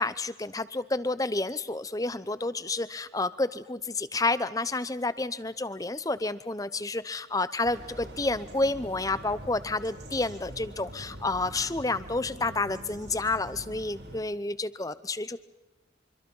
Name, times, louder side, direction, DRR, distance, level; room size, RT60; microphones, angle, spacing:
voice 1, 0.0-15.4, left 2 dB, 20° left, 14 dB, 0.8 m, -30 dB
sound 1, 7.6-14.2, equal, 70° right, 7.3 m, -44 dB
25.5 x 25.0 x 5.6 m, 1.0 s
head